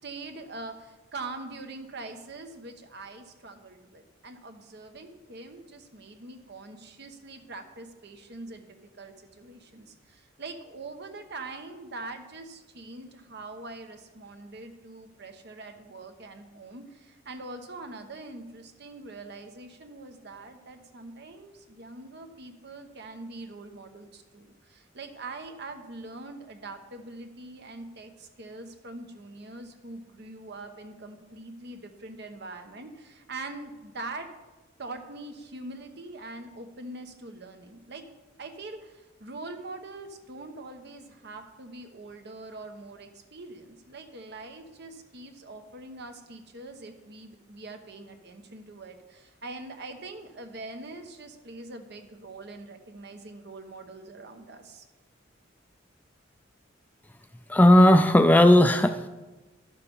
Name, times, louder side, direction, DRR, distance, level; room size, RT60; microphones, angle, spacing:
voice 1, 0.0-34.3 34.8-38.1 38.4-54.9, right 2 dB, 60° right, 6 dB, 1.0 m, -43 dB
voice 2, 57.5-59.1, left 1 dB, 10° left, 9 dB, 0.4 m, -16 dB
12.0 x 6.7 x 5.4 m, 1.1 s
head